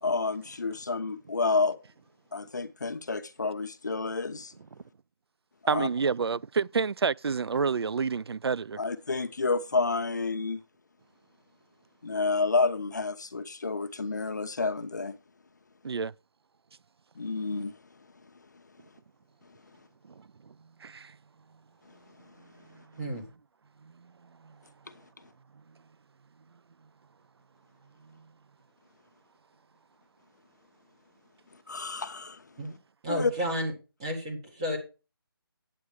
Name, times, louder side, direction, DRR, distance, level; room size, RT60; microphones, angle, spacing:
voice 1, 0.0-1.8 2.3-4.5 5.6-5.9 8.8-10.6 12.0-15.1 17.2-17.7 31.7-32.4 33.1-33.3, left 3 dB, 45° left, 1.0 m, -29 dB
voice 2, 5.7-8.8 15.8-16.1 20.5-20.6 20.8-21.2 23.8-23.9 24.4-24.5, right 5 dB, 90° right, 0.4 m, -28 dB
voice 3, 33.0-33.7 34.0-34.8, equal, 15° right, 1.7 m, -31 dB
9.8 x 8.5 x 4.8 m
figure-of-eight pair, 180°, 13 cm